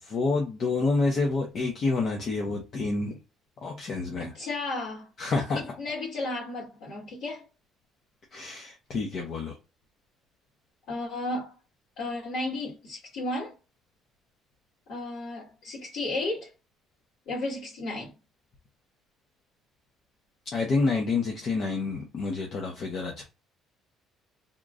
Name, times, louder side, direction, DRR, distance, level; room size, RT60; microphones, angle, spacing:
voice 1, 0.0-3.2 3.6-4.3 5.2-5.8 8.3-9.6 20.5-23.2, left 3 dB, 40° left, 0.8 m, -28 dB
voice 2, 4.2-5.1 5.6-7.4 10.9-11.5 12.0-13.5 14.9-16.5 17.3-18.1, left 2 dB, 65° left, 2.1 m, -33 dB
3.7 x 2.9 x 2.5 m
cardioid pair, 150°, 0 cm